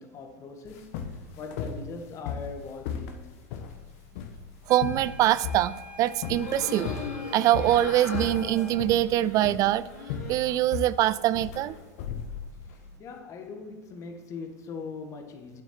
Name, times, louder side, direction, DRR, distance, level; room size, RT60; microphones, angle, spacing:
voice 1, 0.0-3.3 12.1-12.2 12.6-15.6, left 4 dB, 40° left, 1.6 m, -41 dB
sound 1, 0.7-12.9, left 7 dB, 60° left, 1.3 m, -37 dB
sound 2, 4.7-8.9, left 1 dB, 15° right, 1.1 m, -46 dB
voice 2, 4.7-6.9 7.3-9.9 10.3-11.8, right 14 dB, 45° right, 0.4 m, -24 dB
sound 3, 6.3-10.7 11.1-11.8, left 4 dB, 80° left, 2.8 m, -40 dB
9.0 x 7.9 x 4.5 m
hypercardioid pair, 90°, 8 cm